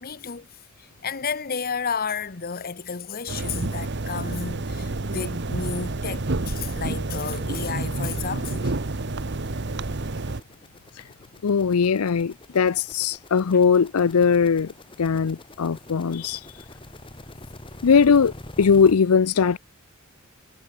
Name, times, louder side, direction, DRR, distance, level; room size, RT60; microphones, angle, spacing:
voice 1, 0.0-8.7, left 6 dB, 45° left, 1.0 m, -32 dB
sound 1, 3.3-10.4, right 2 dB, 55° right, 1.1 m, -29 dB
sound 2, 4.0-4.1 4.3-18.9, left 1 dB, 25° left, 2.3 m, -46 dB
voice 2, 11.4-14.7 15.0-16.5 17.8-19.6, left 6 dB, 85° left, 0.5 m, -20 dB
head